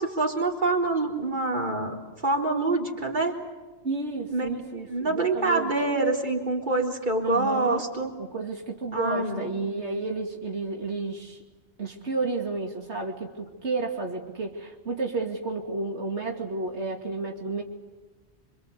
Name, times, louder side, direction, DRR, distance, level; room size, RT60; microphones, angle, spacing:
voice 1, 0.0-2.0 2.2-3.4 4.3-4.5 4.9-8.1 8.9-9.5, right 2 dB, 45° right, 1 dB, 4.1 m, -26 dB
voice 2, 3.8-5.7 7.2-7.8 8.2-11.4 11.8-17.6, right 3 dB, 75° right, 1 dB, 2.8 m, -31 dB
27.0 x 25.5 x 8.3 m, 1.3 s
omnidirectional pair, 1.1 m